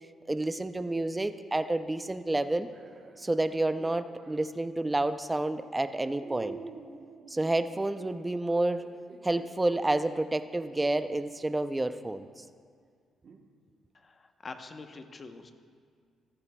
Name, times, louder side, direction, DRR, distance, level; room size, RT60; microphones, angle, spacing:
voice 1, 0.3-2.7 3.2-6.6 7.3-8.9 9.2-12.4, right 2 dB, 15° right, 11 dB, 0.5 m, -29 dB
sound 1, 2.6-4.5 5.3-5.7 6.2-10.9 11.5-11.6 13.2-13.4, right 4 dB, 55° right, 1.0 m, -49 dB
voice 2, 13.9-15.5, left 3 dB, 35° left, 7 dB, 0.9 m, -45 dB
15.5 x 14.5 x 2.3 m, 2.1 s
cardioid pair, 90°, 0 cm